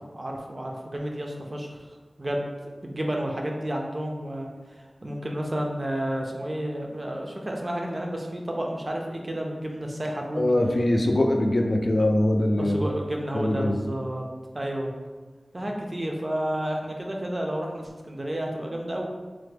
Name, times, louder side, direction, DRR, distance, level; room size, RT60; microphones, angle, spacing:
voice 1, 0.1-1.8 2.2-2.5 2.8-10.6 12.6-14.2 14.5-14.9 15.5-19.1, right 1 dB, 40° right, 0 dB, 0.4 m, -31 dB
voice 2, 10.4-12.9 13.3-13.8, left 1 dB, 50° left, 3 dB, 0.3 m, -22 dB
3.3 x 2.0 x 3.3 m, 1.3 s
wide cardioid pair, 70°, 0 cm